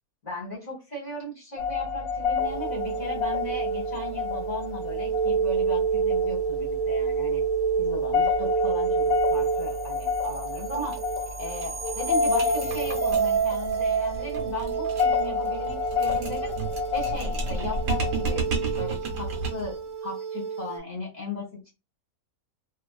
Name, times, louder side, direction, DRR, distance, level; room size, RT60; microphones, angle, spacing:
voice 1, 0.2-7.4 7.8-11.0 11.4-16.5 16.9-18.5 18.7-19.8 20.0-21.7, left 2 dB, 35° left, -2 dB, 0.9 m, -36 dB
sound 1, 1.6-18.4, left 6 dB, 90° left, 1.1 m, -31 dB
sound 2, 2.4-20.8, right 4 dB, 30° right, 0.4 m, -28 dB
sound 3, 10.8-11.0 11.3-11.4 11.6-19.8, right 3 dB, 75° right, 1.0 m, -33 dB
2.5 x 2.4 x 2.3 m, 0.26 s
omnidirectional pair, 1.5 m